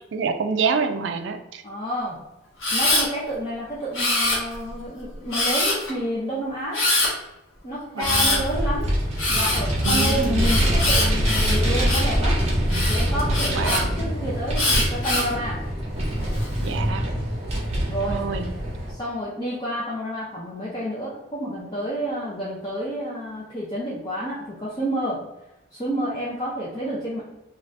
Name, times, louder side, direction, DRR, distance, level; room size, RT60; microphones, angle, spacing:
voice 1, 0.1-1.6 7.9-8.4 9.8-10.6 13.5-13.9 16.6-17.1 18.1-18.5, right 5 dB, 60° right, 7 dB, 0.3 m, -27 dB
voice 2, 1.6-2.2 2.7-6.9 7.6-8.9 9.3-12.4 12.9-15.6 17.9-18.2 18.9-25.2 25.7-27.2, equal, 20° left, -8 dB, 0.6 m, -29 dB
Camera, 2.6-3.1 3.9-4.7 5.3-5.9 6.7-7.1 8.0-8.4 9.2-12.1 12.7-13.8 14.6-15.3 16.0-16.5, left 2 dB, 90° left, 1.1 m, -23 dB
Vehicle, 8.0-18.9, equal, 35° right, 0.8 m, -24 dB
2.6 x 2.4 x 3.2 m, 0.91 s
head